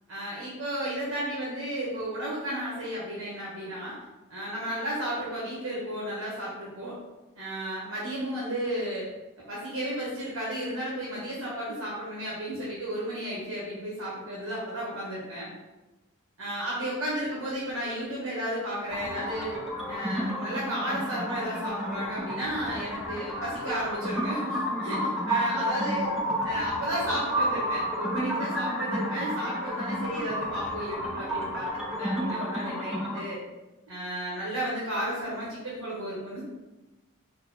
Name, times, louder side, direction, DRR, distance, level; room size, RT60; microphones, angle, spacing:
voice 1, 0.1-4.0 4.3-6.9 7.3-9.1 9.5-15.5 16.4-19.6 19.9-26.1 26.4-33.4 33.9-36.4, right 1 dB, 65° right, -6 dB, 1.0 m, -33 dB
sound 1, 18.9-33.2, equal, ahead, 0.4 m, -31 dB
4.0 x 2.0 x 4.0 m, 1.1 s
head